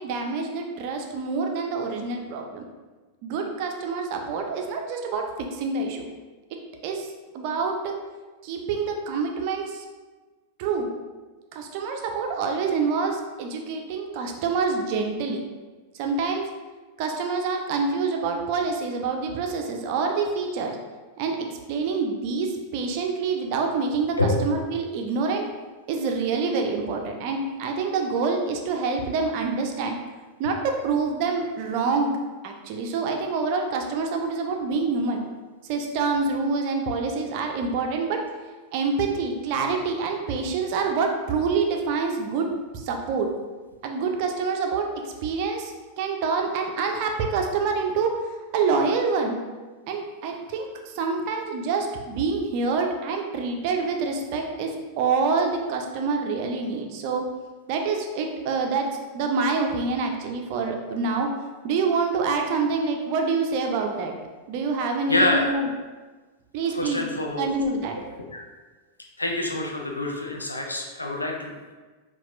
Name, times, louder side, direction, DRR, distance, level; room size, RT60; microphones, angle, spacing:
voice 1, 0.0-2.6 3.2-6.1 6.8-7.1 7.3-7.9 8.4-9.8 10.6-10.9 11.5-15.4 15.9-16.5 17.0-20.8 21.2-21.4 21.7-25.5 25.9-29.9 30.4-32.1 32.4-35.2 35.7-38.2 38.7-42.5 42.7-43.3 43.8-44.9 45.2-48.1 48.5-49.4 49.9-57.2 57.7-58.9 59.1-61.3 61.6-64.1 64.5-65.7 66.5-67.1 67.4-68.0, right 4 dB, 45° right, 3 dB, 0.5 m, -26 dB
voice 2, 65.1-65.5 66.7-67.5 68.3-68.4 69.2-71.7, left 2 dB, 80° left, 1 dB, 0.5 m, -26 dB
5.8 x 2.4 x 2.5 m, 1.3 s
figure-of-eight pair, 90°, 0 cm